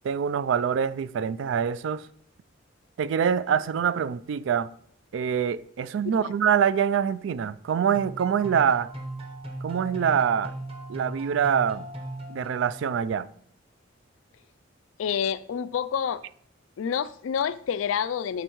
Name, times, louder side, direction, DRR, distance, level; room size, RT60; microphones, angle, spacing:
voice 1, 0.0-2.0 3.0-4.7 5.1-8.9 9.6-10.5 10.9-11.9 12.3-13.3, right 7 dB, 65° right, 0.3 m, -25 dB
sound 1, 7.9-13.1, right 1 dB, 30° right, 1.0 m, -38 dB
voice 2, 15.0-16.2 16.8-18.4, left 8 dB, 85° left, 0.3 m, -28 dB
11.5 x 4.3 x 3.0 m
head